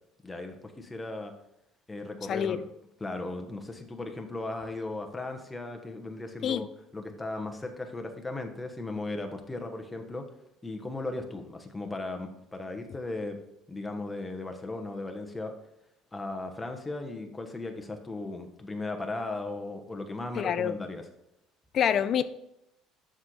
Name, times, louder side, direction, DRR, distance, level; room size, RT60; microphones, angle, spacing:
voice 1, 0.2-1.3 1.9-2.6 3.0-6.7 6.9-10.2 10.6-13.4 13.7-15.5 16.1-21.0, left 2 dB, 15° left, 1.2 m, -37 dB
voice 2, 2.3-2.6 6.4-6.7 20.4-20.8 21.7-22.2, left 9 dB, 50° left, 0.4 m, -26 dB
7.2 x 6.4 x 4.0 m
cardioid pair, 110°, 0 cm